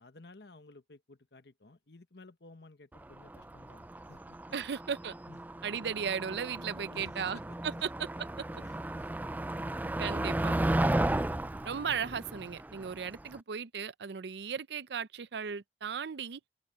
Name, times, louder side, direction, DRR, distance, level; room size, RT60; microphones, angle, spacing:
voice 1, 0.0-4.4 5.3-5.4 6.9-7.9 8.5-9.1, left 2 dB, 75° left, 1.3 m, -55 dB
Motor vehicle (road), 3.0-13.4, right 1 dB, 10° right, 0.3 m, -34 dB
voice 2, 4.5-5.1 5.6-7.4 7.8-7.9 10.0-10.6 11.6-16.4, right 6 dB, 80° right, 0.5 m, -36 dB
open air
head